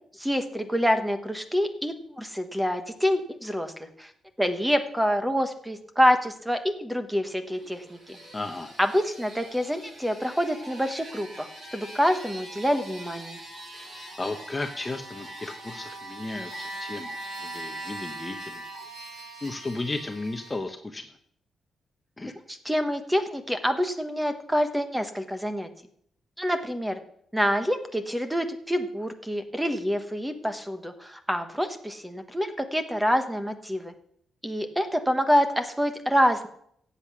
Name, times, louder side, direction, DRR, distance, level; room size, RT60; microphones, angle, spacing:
voice 1, 0.2-3.7 4.0-4.1 4.4-8.2 8.8-13.4 22.5-25.7 26.4-27.0 27.3-33.9 34.4-36.5, equal, 5° right, 8 dB, 1.2 m, -26 dB
sound 1, 7.4-20.6, right 1 dB, 45° right, 7.3 m, -42 dB
voice 2, 8.3-8.7 13.7-18.6 19.4-21.1 22.2-22.3, left 2 dB, 20° left, 6 dB, 0.9 m, -35 dB
14.5 x 8.3 x 6.1 m, 0.68 s
cardioid pair, 130°, 0 cm